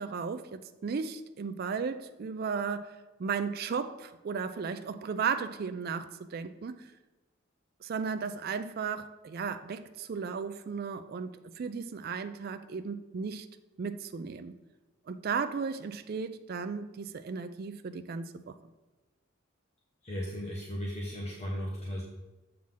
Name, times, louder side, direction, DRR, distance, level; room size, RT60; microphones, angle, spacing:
voice 1, 0.0-2.9 3.2-6.9 7.8-13.5 13.8-14.5 15.1-18.5, right 5 dB, 50° right, 9 dB, 0.4 m, -35 dB
voice 2, 20.0-22.0, equal, 35° left, -3 dB, 1.0 m, -36 dB
7.4 x 5.8 x 3.7 m, 1.1 s
head